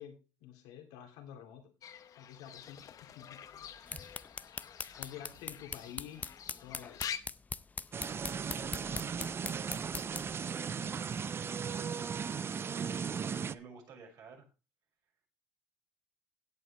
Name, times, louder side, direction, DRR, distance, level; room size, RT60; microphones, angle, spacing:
voice 1, 0.0-1.7 2.2-3.7 4.9-6.3 6.6-7.1 8.6-9.1, left 10 dB, 90° left, 4 dB, 3.0 m, -50 dB
Fowl / Bird, 1.8-7.2, left 9 dB, 50° left, 1.0 m, -46 dB
sound 1, 3.6-10.4, left 4 dB, 20° left, 0.5 m, -43 dB
sound 2, 7.9-13.5, right 6 dB, 30° right, 0.5 m, -37 dB
voice 2, 10.4-11.1 11.4-14.5, right 4 dB, 60° right, 0 dB, 6.0 m, -54 dB
16.5 x 8.4 x 3.3 m, 0.31 s
cardioid pair, 100°, 8 cm